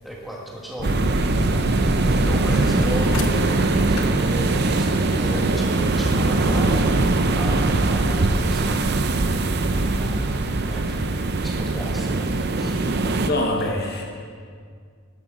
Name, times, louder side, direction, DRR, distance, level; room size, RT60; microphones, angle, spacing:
voice 1, 0.0-0.9 2.0-9.2 9.7-12.2 12.5-12.7, equal, ahead, -4 dB, 1.6 m, -36 dB
sound 1, 0.8-7.5, left 1 dB, 70° left, 1.0 m, -30 dB
sound 2, 0.8-13.3, right 2 dB, 50° right, 0.6 m, -21 dB
voice 2, 13.3-14.0, left 1 dB, 45° left, 2 dB, 0.9 m, -25 dB
12.0 x 11.0 x 3.9 m, 2.1 s
head